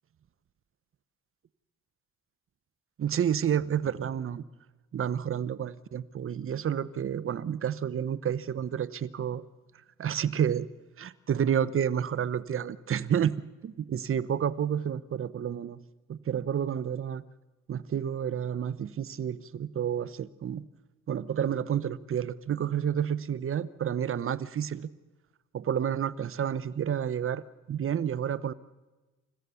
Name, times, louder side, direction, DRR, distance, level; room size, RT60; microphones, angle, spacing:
voice 1, 3.0-4.4 4.9-9.4 10.0-10.7 11.0-13.4 13.6-15.8 16.1-17.2 17.7-20.6 21.1-24.9 25.5-28.5, right 9 dB, 45° right, 17 dB, 0.8 m, -30 dB
29.5 x 15.0 x 7.0 m, 1.2 s
cardioid pair, 90°, 30 cm